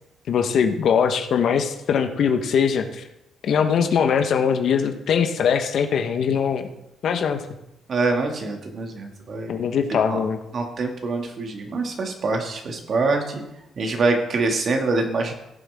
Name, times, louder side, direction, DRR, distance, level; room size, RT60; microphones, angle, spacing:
voice 1, 0.3-3.0 3.4-6.7 7.0-7.4 9.5-10.4, left 7 dB, 65° left, 7 dB, 1.2 m, -21 dB
voice 2, 7.9-9.6 10.1-10.2 10.5-13.4 13.8-15.3, right 3 dB, 50° right, 3 dB, 2.3 m, -25 dB
17.0 x 7.4 x 3.7 m, 0.85 s
cardioid pair, 90°, 0 cm